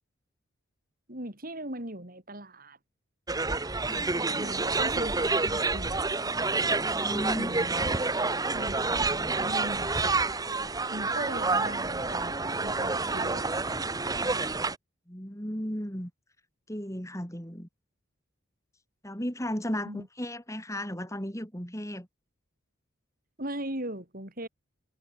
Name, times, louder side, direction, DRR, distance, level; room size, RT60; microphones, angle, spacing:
voice 1, 1.1-2.8 4.2-6.5 7.4-7.7 8.5-9.9 10.9-13.5 19.9-20.1 23.4-24.5, right 1 dB, 45° right, 5.3 m, -39 dB
sound 1, 3.3-14.8, right 3 dB, 20° right, 1.2 m, -28 dB
voice 2, 6.9-7.6 15.1-16.1 16.7-17.7 19.0-22.1, equal, 15° left, 7.3 m, -35 dB
head